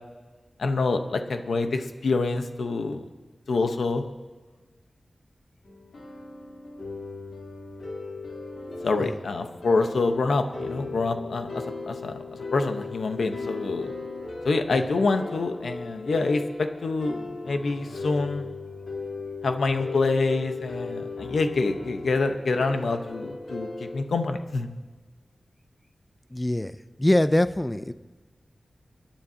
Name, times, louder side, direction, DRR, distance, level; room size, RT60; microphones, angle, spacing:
voice 1, 0.6-3.1 3.5-4.0 8.8-12.2 12.5-13.9 14.4-18.5 19.4-24.7, left 3 dB, 90° left, 6 dB, 1.0 m, -26 dB
sound 1, 5.6-24.0, left 3 dB, 70° left, 3.5 m, -37 dB
voice 2, 26.3-27.9, left 1 dB, 15° left, 13 dB, 0.5 m, -24 dB
30.0 x 10.5 x 2.9 m, 1.4 s
wide cardioid pair, 115°, 0 cm